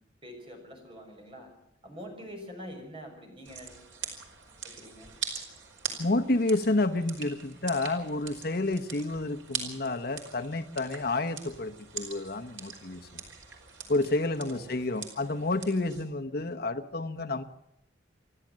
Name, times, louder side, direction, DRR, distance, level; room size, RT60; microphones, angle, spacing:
voice 1, 0.2-1.5 1.8-3.9 4.6-5.1 14.4-15.2 16.3-16.6, equal, 30° right, 2 dB, 6.4 m, -46 dB
sound 1, 3.4-16.0, right 6 dB, 85° right, 4.9 m, -42 dB
voice 2, 6.0-13.2 13.9-17.4, left 2 dB, 55° left, 9 dB, 1.0 m, -30 dB
29.0 x 12.0 x 7.5 m, 0.82 s
head